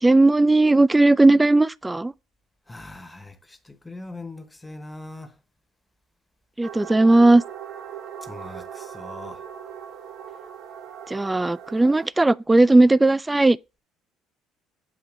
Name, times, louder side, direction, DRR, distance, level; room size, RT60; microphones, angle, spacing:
voice 1, 0.0-2.1 6.6-7.4 11.1-13.6, right 2 dB, 15° right, 0.3 m, -17 dB
voice 2, 2.7-5.3 8.2-9.4, left 2 dB, 10° left, 0.9 m, -40 dB
sound 1, 6.6-12.1, right 8 dB, 65° right, 1.1 m, -39 dB
7.3 x 2.8 x 4.9 m
hypercardioid pair, 65°, 0 cm